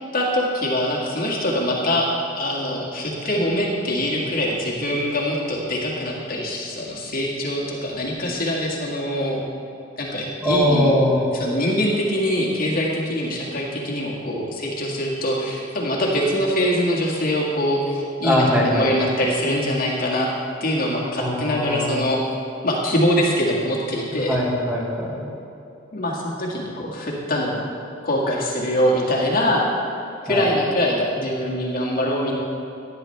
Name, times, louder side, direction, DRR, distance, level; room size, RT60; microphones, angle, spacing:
voice 1, 0.1-9.4 10.0-11.0 11.3-20.3 20.6-22.2 22.6-24.4 25.9-27.7 28.0-29.7 30.2-32.3, equal, 50° left, -3 dB, 1.9 m, -23 dB
voice 2, 10.4-11.3 18.2-19.1 21.2-22.0 24.3-25.3 30.3-30.5, left 1 dB, 10° right, -5 dB, 2.1 m, -21 dB
16.5 x 10.5 x 3.3 m, 2.8 s
head